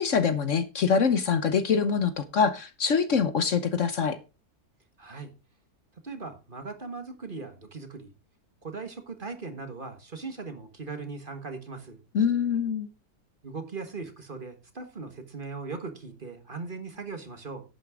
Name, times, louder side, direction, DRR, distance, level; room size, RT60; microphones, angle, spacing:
voice 1, 0.0-4.2 12.1-12.9, left 6 dB, 55° left, 1.1 m, -24 dB
voice 2, 5.0-5.3 6.0-8.1 8.6-12.0 13.4-17.6, right 4 dB, 35° right, 1.6 m, -39 dB
11.0 x 9.2 x 3.7 m
omnidirectional pair, 1.6 m